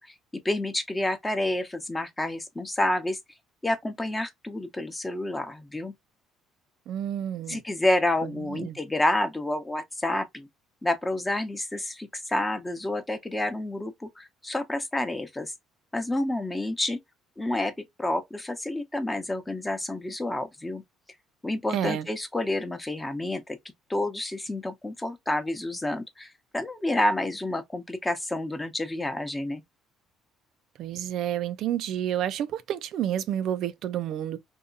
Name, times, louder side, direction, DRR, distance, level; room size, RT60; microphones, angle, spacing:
voice 1, 0.4-3.2 3.6-5.9 7.5-10.5 10.8-15.5 15.9-17.0 17.4-17.7 18.0-20.8 21.4-23.6 23.9-29.6, left 1 dB, 15° left, 0.8 m, -29 dB
voice 2, 6.9-7.6 8.2-8.8 21.7-22.1 30.8-34.4, right 10 dB, 70° right, 0.4 m, -30 dB
2.7 x 2.3 x 2.5 m
cardioid pair, 95°, 0 cm